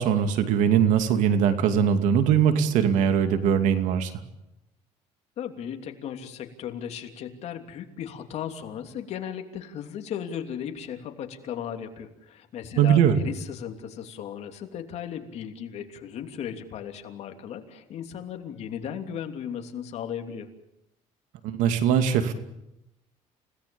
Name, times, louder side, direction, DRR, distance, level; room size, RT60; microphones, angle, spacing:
voice 1, 0.0-4.1 12.8-13.2 21.4-22.3, right 8 dB, 75° right, 8 dB, 2.6 m, -21 dB
voice 2, 5.4-20.5, left 8 dB, 55° left, 5 dB, 3.0 m, -36 dB
30.0 x 18.0 x 7.1 m, 0.88 s
cardioid pair, 125°, 13 cm